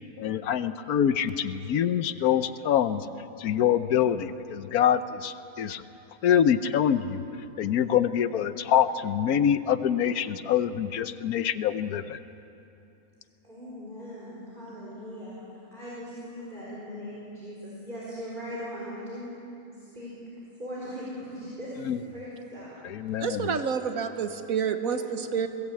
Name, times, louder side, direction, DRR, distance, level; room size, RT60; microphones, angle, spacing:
voice 1, 0.2-3.1 3.4-5.8 6.2-7.2 7.6-12.2 21.9-22.0 22.8-23.6, left 9 dB, 75° left, 12 dB, 1.2 m, -25 dB
voice 2, 13.4-15.5 15.7-19.3 19.7-20.1 20.6-23.2 23.7-24.0 24.8-25.1, equal, 30° right, -8 dB, 4.4 m, -40 dB
voice 3, 23.2-25.5, right 6 dB, 65° right, 8 dB, 1.5 m, -28 dB
21.5 x 17.0 x 8.5 m, 2.8 s
omnidirectional pair, 1.6 m